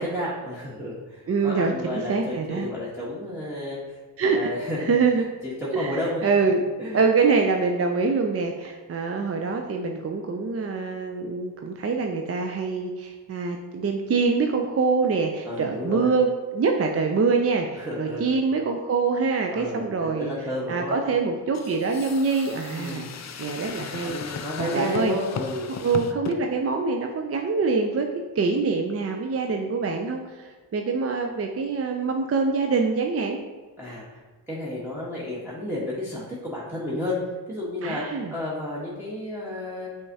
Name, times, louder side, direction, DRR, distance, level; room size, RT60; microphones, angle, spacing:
voice 1, 0.0-4.0 4.2-4.9 5.4-6.3 6.8-7.0 15.5-16.1 17.7-18.3 19.5-21.0 22.8-23.1 24.0-25.7 33.8-34.2 34.5-37.2 37.5-39.9, left 1 dB, 5° right, -8 dB, 1.2 m, -31 dB
voice 2, 1.3-2.7 4.2-4.5 4.8-5.3 5.7-6.6 6.9-20.3 20.7-23.1 23.4-25.1 25.8-28.1 28.4-33.4 37.8-38.3, right 4 dB, 30° right, 3 dB, 0.4 m, -25 dB
sound 1, 21.5-26.4, left 6 dB, 35° left, 0.4 m, -36 dB
5.3 x 3.5 x 2.7 m, 1.4 s
supercardioid pair, 40°, 49 cm